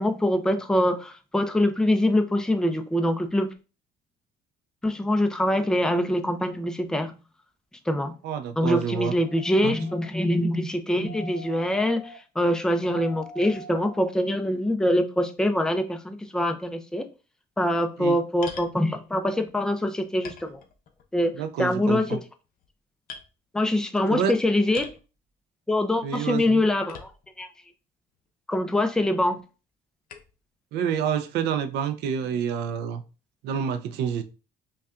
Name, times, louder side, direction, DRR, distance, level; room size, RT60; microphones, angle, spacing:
voice 1, 0.0-3.5 4.8-7.1 7.9-8.1 8.6-17.1 17.6-20.6 21.1-21.3 21.6-22.2 23.5-24.9 25.7-27.1 27.4-27.5 28.5-29.4, left 1 dB, 5° left, 0.5 m, -24 dB
voice 2, 8.2-9.1 9.6-9.8 18.0-18.2 21.3-22.2 24.1-24.3 26.0-26.6 30.7-33.0 33.4-34.2, right 8 dB, 85° right, 0.5 m, -28 dB
sound 1, 9.1-10.1 11.1-12.2 12.8-14.1 14.7-14.8, equal, 90° left, 0.7 m, -44 dB
sound 2, 18.4-18.8 19.6-19.7 20.2-21.1 21.4-21.8 22.4-22.7 23.1-23.3 24.7-25.1 26.9-27.4 28.1-28.2 30.1-30.4, left 6 dB, 55° left, 0.7 m, -42 dB
5.4 x 2.3 x 2.4 m
cardioid pair, 110°, 17 cm